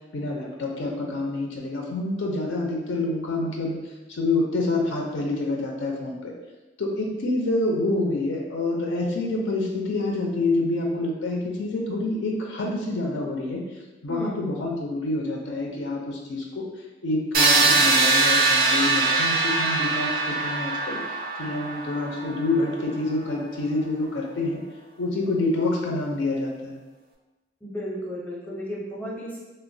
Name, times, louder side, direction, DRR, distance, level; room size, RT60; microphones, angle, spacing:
voice 1, 0.1-3.8 4.1-6.3 6.8-13.6 14.0-16.6 17.0-21.0 21.4-24.6 25.0-26.8, left 2 dB, 70° left, 0 dB, 0.4 m, -27 dB
voice 2, 14.1-14.4 27.6-29.4, equal, 10° left, -6 dB, 0.6 m, -33 dB
sound 1, 17.3-23.1, right 3 dB, 50° right, 0.4 m, -22 dB
2.9 x 2.1 x 2.6 m, 1.1 s
head